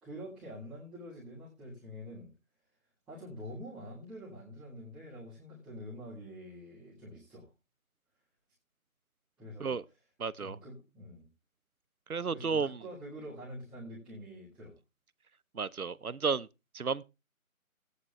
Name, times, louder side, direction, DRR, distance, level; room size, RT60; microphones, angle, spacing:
voice 1, 0.0-2.3 3.1-7.5 9.4-9.8 10.4-11.3 12.3-14.8, equal, ahead, 2.1 m, -46 dB
voice 2, 10.2-10.6 12.1-12.8 15.5-16.5 16.7-17.0, right 5 dB, 90° right, 1.0 m, -32 dB
17.0 x 9.6 x 3.3 m
figure-of-eight pair, 165°, 42 cm